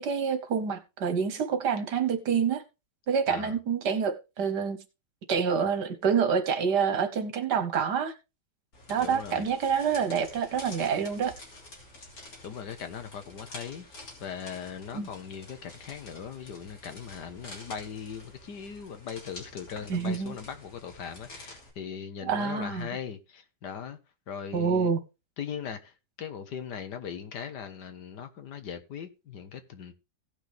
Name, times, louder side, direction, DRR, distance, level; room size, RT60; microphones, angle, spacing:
voice 1, 0.0-2.6 3.1-4.8 5.3-8.1 8.9-11.3 14.9-15.1 19.9-20.3 22.2-22.9 24.5-25.0, right 6 dB, 70° right, 1.8 m, -27 dB
voice 2, 3.3-3.6 9.0-9.4 12.2-24.0 24.3-24.9 25.4-29.9, left 7 dB, 75° left, 1.8 m, -39 dB
sound 1, 8.7-21.7, left 2 dB, 55° left, 3.4 m, -48 dB
17.0 x 6.0 x 3.5 m
omnidirectional pair, 1.9 m